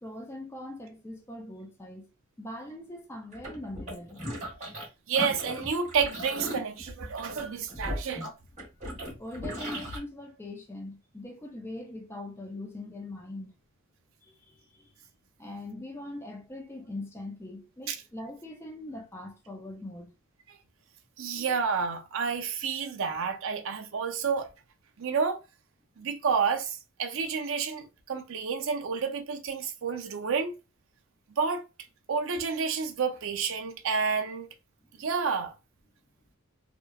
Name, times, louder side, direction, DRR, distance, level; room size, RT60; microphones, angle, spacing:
voice 1, 0.0-2.1 2.4-4.2 9.2-13.5 14.2-14.9 15.4-20.1 34.9-35.0, left 1 dB, 10° left, 0.3 m, -41 dB
sound 1, 3.3-4.9 5.1-10.0, equal, 30° right, 1.0 m, -37 dB
voice 2, 5.1-8.3 17.9-18.0 21.2-24.5 25.0-25.4 26.0-30.6 31.3-31.7 32.1-34.5 35.0-35.5, right 5 dB, 60° right, 0.5 m, -30 dB
2.9 x 2.1 x 2.3 m
head